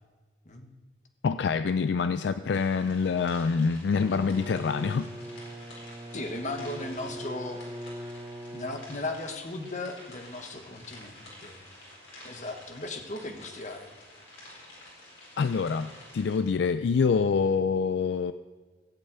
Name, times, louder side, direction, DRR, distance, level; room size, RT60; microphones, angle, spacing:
voice 1, 1.2-5.1 15.4-18.3, left 5 dB, 65° left, 11 dB, 0.3 m, -26 dB
sound 1, 2.5-16.4, left 1 dB, 85° left, 4.5 m, -50 dB
Bowed string instrument, 3.9-9.3, right 1 dB, 15° right, 0.7 m, -41 dB
voice 2, 6.1-7.6 8.5-11.7 12.2-13.9, left 2 dB, 40° left, 5 dB, 1.2 m, -37 dB
15.5 x 5.5 x 8.8 m, 1.3 s
head